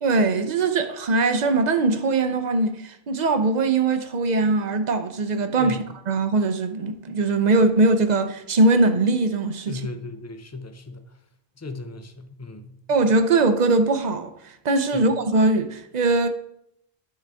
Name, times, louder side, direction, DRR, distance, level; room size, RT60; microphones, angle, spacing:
voice 1, 0.0-9.8 12.9-16.3, right 3 dB, 50° right, 0.7 m, -21 dB
voice 2, 9.7-11.2 11.6-12.8 14.9-15.1, left 3 dB, 25° left, 0.3 m, -36 dB
11.5 x 3.9 x 3.4 m
omnidirectional pair, 1.0 m